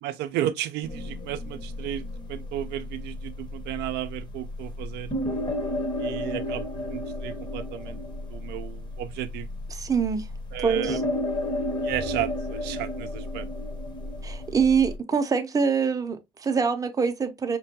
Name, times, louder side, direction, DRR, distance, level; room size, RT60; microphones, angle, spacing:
voice 1, 0.0-5.1 6.0-8.0 8.3-9.5 10.5-11.0 11.8-13.5, right 13 dB, 80° right, 0.4 m, -33 dB
sound 1, 0.8-15.0, left 1 dB, 25° left, 0.8 m, -33 dB
voice 2, 9.7-10.3 10.6-11.0 14.2-17.6, right 6 dB, 20° right, 0.5 m, -24 dB
5.1 x 2.2 x 2.7 m
cardioid pair, 110°, 17 cm